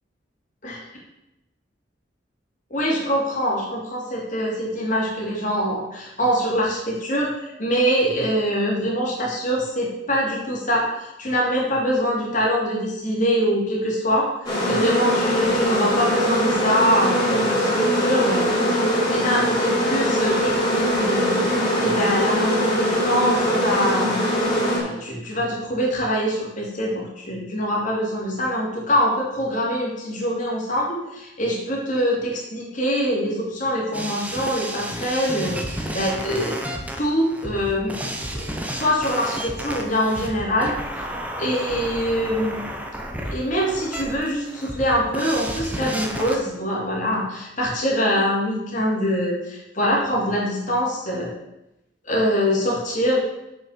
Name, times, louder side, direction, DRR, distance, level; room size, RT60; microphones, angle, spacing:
voice 1, 2.7-18.8 19.1-21.4 21.8-24.4 24.8-36.6 37.0-40.7 41.4-42.6 43.2-51.3 52.0-53.2, equal, 40° left, -3 dB, 2.9 m, -24 dB
sound 1, 14.4-24.8, equal, 20° left, 3.7 m, -21 dB
sound 2, 33.9-46.4, right 1 dB, 10° right, 1.0 m, -32 dB
7.5 x 5.9 x 6.6 m, 0.90 s
head